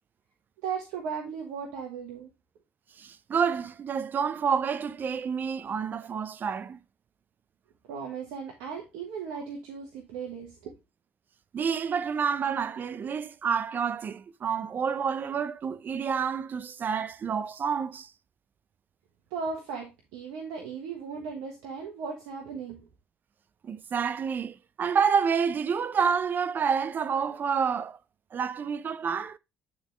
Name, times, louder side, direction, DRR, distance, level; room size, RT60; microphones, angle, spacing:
voice 1, 0.6-2.3 7.9-10.7 19.3-19.9 20.1-22.8, right 6 dB, 85° right, 1.3 m, -36 dB
voice 2, 3.0-6.8 11.5-18.1 23.6-28.0 28.3-29.4, right 6 dB, 45° right, 0.5 m, -28 dB
9.5 x 3.7 x 3.1 m
supercardioid pair, 75°, 5 cm